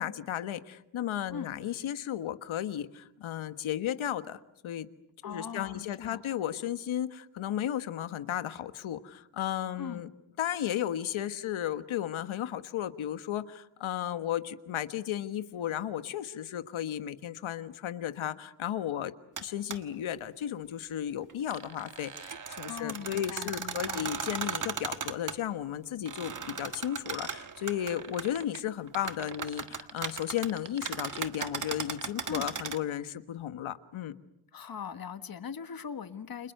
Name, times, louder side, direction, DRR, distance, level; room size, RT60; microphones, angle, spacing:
voice 1, 0.0-4.9 5.2-10.1 10.4-19.1 19.4-34.1, left 11 dB, 85° left, 11 dB, 1.5 m, -34 dB
voice 2, 5.2-6.3 9.8-10.0 22.7-24.1 32.3-32.5 34.5-36.5, left 7 dB, 45° left, 10 dB, 1.5 m, -40 dB
sound 1, 19.4-19.5 19.7-19.8 21.3-25.4 26.1-28.6 28.9-32.8, right 6 dB, 40° right, 1.7 m, -37 dB
29.5 x 27.5 x 6.7 m, 0.79 s
wide cardioid pair, 130°, 46 cm